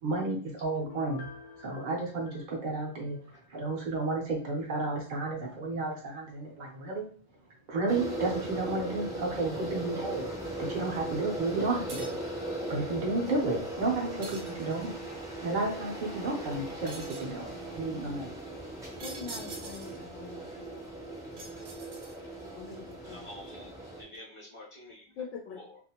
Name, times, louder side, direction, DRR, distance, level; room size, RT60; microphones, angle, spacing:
voice 1, 0.0-1.3 1.6-3.2 3.5-7.1 7.7-10.3 10.6-12.2 12.7-14.9 15.4-18.3, right 2 dB, 45° right, -2 dB, 0.7 m, -32 dB
Piano, 0.8-3.5 3.9-4.0, left 5 dB, 50° left, 0.4 m, -50 dB
sound 1, 7.9-24.0, right 1 dB, 5° right, 0.6 m, -38 dB
sound 2, 11.9-12.3 14.2-15.0 16.9-17.4 19.0-20.1 21.4-22.4, right 3 dB, 70° right, 1.0 m, -45 dB
voice 2, 19.0-20.7 22.5-23.3 25.2-25.6, left 5 dB, 70° left, -1 dB, 0.9 m, -43 dB
voice 3, 23.1-25.2 25.5-25.8, left 1 dB, 30° left, -4 dB, 0.8 m, -49 dB
2.5 x 2.5 x 2.8 m, 0.43 s
omnidirectional pair, 1.3 m